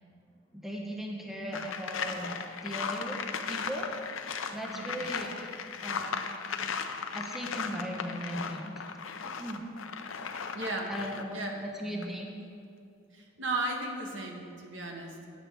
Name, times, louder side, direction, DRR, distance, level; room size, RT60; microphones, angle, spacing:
voice 1, 0.5-2.4 2.6-3.2 3.4-3.9 4.5-5.5 5.8-6.2 7.1-8.7 9.2-9.6 10.9-12.2, equal, ahead, -1 dB, 1.0 m, -38 dB
sound 1, 1.5-11.4 11.8-12.0, left 5 dB, 80° left, 0.7 m, -37 dB
voice 2, 4.6-5.0 10.5-11.0 11.3-11.7 13.1-15.3, right 2 dB, 70° right, 1 dB, 1.4 m, -35 dB
16.5 x 8.1 x 3.4 m, 2.5 s
head